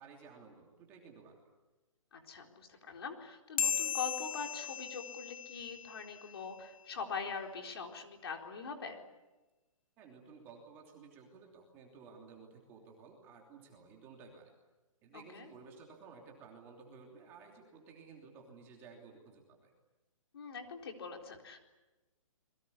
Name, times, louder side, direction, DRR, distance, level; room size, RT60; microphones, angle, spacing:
voice 1, 0.0-1.5 10.0-14.5 15.0-19.7, right 5 dB, 15° right, 0 dB, 3.0 m, -55 dB
voice 2, 2.1-9.0 15.1-15.5 20.3-21.6, left 5 dB, 45° left, 3 dB, 4.2 m, -43 dB
sound 1, 3.6-6.4, left 7 dB, 75° left, 0.8 m, -37 dB
28.0 x 22.5 x 8.5 m, 1.1 s
hypercardioid pair, 175°, 18 cm